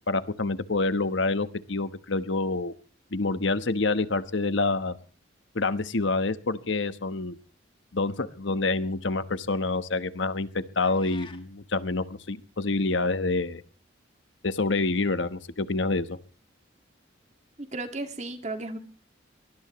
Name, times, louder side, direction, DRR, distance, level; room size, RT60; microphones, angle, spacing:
voice 1, 0.1-2.7 3.1-4.9 5.5-7.3 7.9-10.5 10.8-13.6 14.4-16.2, left 3 dB, 75° left, 12 dB, 1.2 m, -27 dB
sound 1, 10.8-11.5, left 4 dB, 25° left, 1.9 m, -48 dB
voice 2, 17.6-18.8, right 2 dB, 35° right, 7 dB, 2.0 m, -34 dB
23.0 x 19.5 x 3.1 m, 0.40 s
head